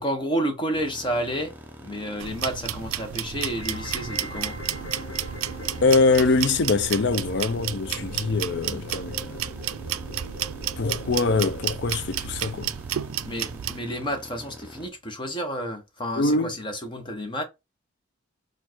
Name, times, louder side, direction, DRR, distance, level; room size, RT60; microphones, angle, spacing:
voice 1, 0.0-1.5 1.8-4.6 13.2-17.4, equal, 20° left, 1.0 m, -30 dB
sound 1, 0.7-14.9, equal, 10° right, 0.5 m, -45 dB
sound 2, 2.2-13.8, right 11 dB, 80° right, 0.4 m, -32 dB
sound 3, 3.5-11.5, equal, 85° left, 1.3 m, -41 dB
voice 2, 5.8-9.5 10.8-12.7 16.2-16.5, left 3 dB, 55° left, 0.5 m, -23 dB
4.4 x 2.5 x 4.4 m
head